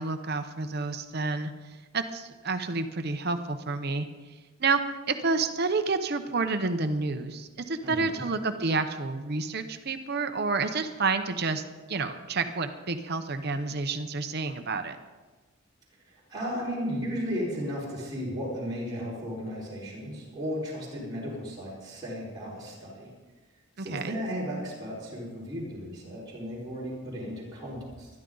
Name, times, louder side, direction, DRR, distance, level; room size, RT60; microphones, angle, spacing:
voice 1, 0.0-1.5 1.9-4.1 4.6-11.6 11.9-15.0 23.8-24.2, right 3 dB, 45° right, 8 dB, 0.8 m, -29 dB
voice 2, 7.8-8.2 16.0-23.1 23.8-28.1, equal, 20° right, -7 dB, 4.7 m, -35 dB
20.5 x 13.0 x 3.9 m, 1.3 s
head